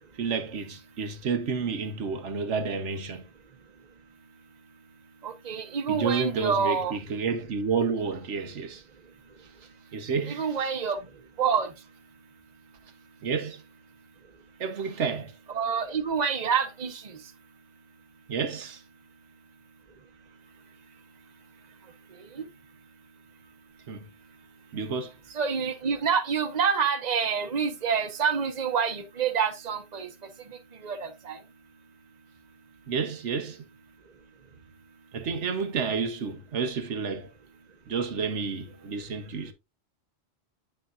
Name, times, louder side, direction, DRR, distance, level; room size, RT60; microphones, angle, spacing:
voice 1, 0.2-3.3 5.9-8.8 9.9-10.7 13.2-13.6 14.6-15.3 18.3-18.8 23.9-24.1 24.7-25.1 32.9-33.6 35.1-37.3 37.9-39.5, right 5 dB, 90° right, 1.3 m, -30 dB
voice 2, 5.2-7.0 10.3-11.0 11.4-11.7 15.5-17.2 22.3-22.4 25.3-30.1 30.5-31.4, right 6 dB, 40° right, 1.1 m, -27 dB
8.7 x 6.8 x 2.5 m
omnidirectional pair, 1.2 m